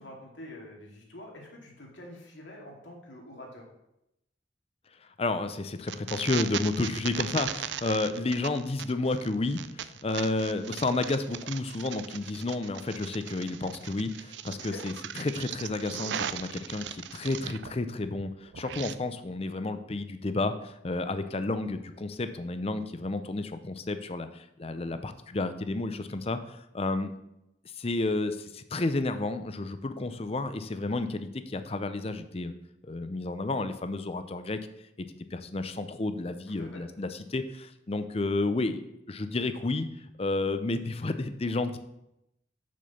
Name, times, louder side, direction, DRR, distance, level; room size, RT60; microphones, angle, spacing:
voice 1, 0.0-3.6 14.6-14.8 24.7-25.0 36.6-36.8, left 1 dB, 85° left, -1 dB, 2.3 m, -46 dB
voice 2, 5.0-27.1 27.8-32.5 32.8-34.6 35.0-35.1 35.3-38.8 39.1-39.9 40.2-41.8, left 2 dB, 35° left, 10 dB, 0.5 m, -31 dB
sound 1, 5.9-17.8 18.0-18.9, right 10 dB, 70° right, 0.4 m, -38 dB
6.2 x 6.0 x 6.9 m, 0.85 s
head